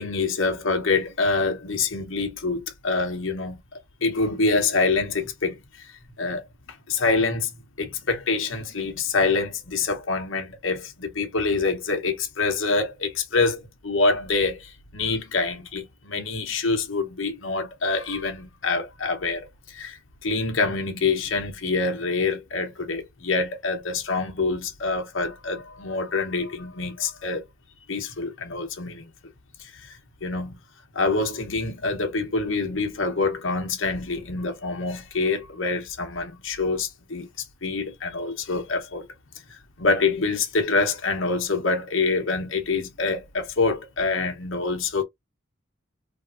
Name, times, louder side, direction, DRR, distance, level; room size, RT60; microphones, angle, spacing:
voice 1, 0.0-3.6 4.0-5.6 6.2-6.4 6.9-27.4 27.9-29.1 29.9-30.6 30.9-37.3 37.6-39.0 39.8-45.0, left 3 dB, 70° left, 0.9 m, -26 dB
3.4 x 2.5 x 2.4 m
head